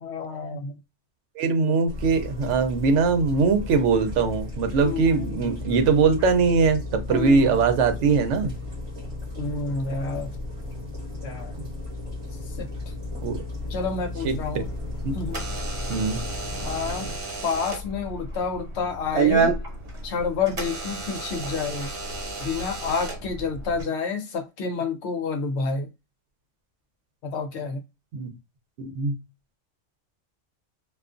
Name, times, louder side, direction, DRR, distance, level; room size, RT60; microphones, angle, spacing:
voice 1, 0.0-0.7 1.6-1.7 4.8-5.3 7.1-7.6 9.4-10.3 11.2-11.5 12.5-12.7 13.7-14.7 15.1-15.5 16.6-17.1 17.4-19.5 20.0-21.9 22.4-25.9 27.2-27.8, left 5 dB, 70° left, 0.8 m, -29 dB
voice 2, 1.4-8.5 11.6-11.7 13.2-13.4 14.2-14.3 15.0-15.1 15.9-16.2 28.1-28.3 28.8-29.1, right 4 dB, 75° right, 0.9 m, -21 dB
sound 1, 1.9-17.1, left 2 dB, 30° right, 0.9 m, -35 dB
Door / Alarm, 14.6-23.8, right 4 dB, 55° right, 1.2 m, -30 dB
2.4 x 2.3 x 2.5 m
omnidirectional pair, 1.3 m